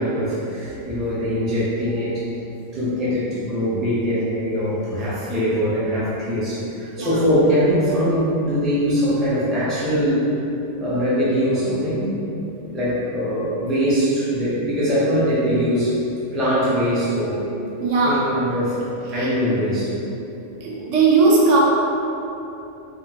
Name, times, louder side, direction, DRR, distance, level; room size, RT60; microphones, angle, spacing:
voice 1, 0.0-2.2 2.7-10.2 10.8-12.1 12.6-16.0 16.3-17.4 18.0-18.8 19.1-20.0, equal, ahead, -10 dB, 0.4 m, -22 dB
voice 2, 17.8-18.3 19.1-19.3 20.6-21.6, right 3 dB, 75° right, -5 dB, 0.9 m, -18 dB
3.7 x 2.1 x 2.8 m, 2.9 s
omnidirectional pair, 1.3 m